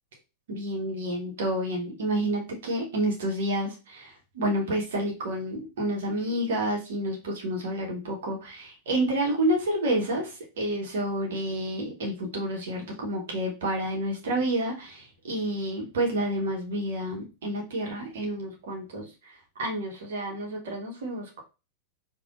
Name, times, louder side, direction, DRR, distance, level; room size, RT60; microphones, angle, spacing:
voice 1, 0.5-21.4, right 1 dB, 60° right, 0 dB, 1.0 m, -29 dB
4.9 x 2.3 x 2.4 m, 0.30 s
figure-of-eight pair, 90°, 0 cm